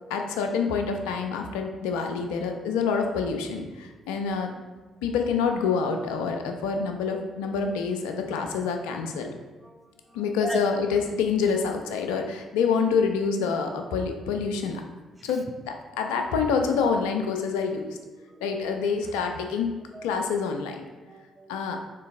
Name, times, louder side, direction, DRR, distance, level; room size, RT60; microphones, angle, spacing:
voice 1, 0.1-4.6 5.0-9.4 10.1-14.8 15.2-18.0 18.4-20.8 21.5-21.8, left 5 dB, 70° left, 4 dB, 0.3 m, -27 dB
voice 2, 7.0-7.8 9.6-10.6 15.2-15.3 18.2-18.6 19.9-20.3 21.0-21.5, right 2 dB, 20° right, 3 dB, 0.5 m, -40 dB
3.7 x 2.6 x 3.4 m, 1.2 s
figure-of-eight pair, 40°, 0 cm